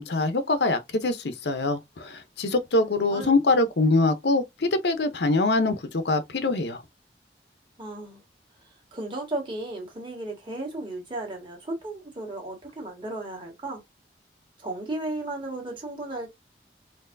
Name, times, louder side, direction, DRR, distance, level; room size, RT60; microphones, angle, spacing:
voice 1, 0.0-6.8, left 2 dB, 75° left, 0.7 m, -24 dB
voice 2, 7.8-8.2 8.9-13.8 14.6-16.3, right 2 dB, 25° right, 1.6 m, -34 dB
4.5 x 2.7 x 2.6 m
head